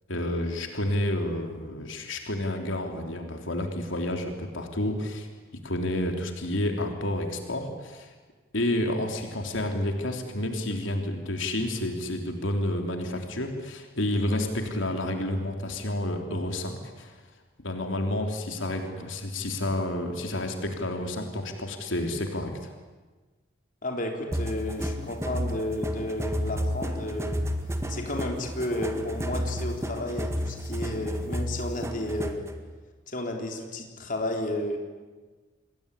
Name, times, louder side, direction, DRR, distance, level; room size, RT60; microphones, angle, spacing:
voice 1, 0.1-5.3 5.6-8.1 8.5-17.2 17.6-22.7, left 1 dB, 85° left, 3 dB, 3.5 m, -30 dB
voice 2, 23.8-27.4 27.9-32.5 33.1-34.8, left 1 dB, 45° left, 2 dB, 3.9 m, -32 dB
sound 1, 24.3-32.5, equal, 15° right, 1.9 m, -32 dB
27.5 x 21.0 x 10.0 m, 1.3 s
head